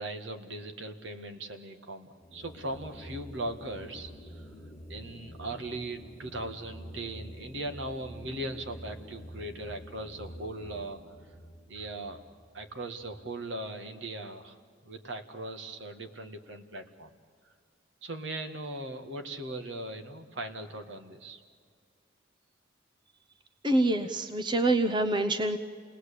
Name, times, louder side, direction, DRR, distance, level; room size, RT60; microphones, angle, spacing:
voice 1, 0.0-4.5 4.9-11.1 11.7-12.2 12.5-14.6 14.8-17.1 18.0-21.4, right 1 dB, 70° right, 6 dB, 1.9 m, -39 dB
sound 1, 2.1-13.5, equal, 5° right, 2.0 m, -48 dB
voice 2, 23.6-25.6, right 2 dB, 25° right, 9 dB, 0.8 m, -26 dB
28.5 x 19.0 x 8.6 m, 2.1 s
head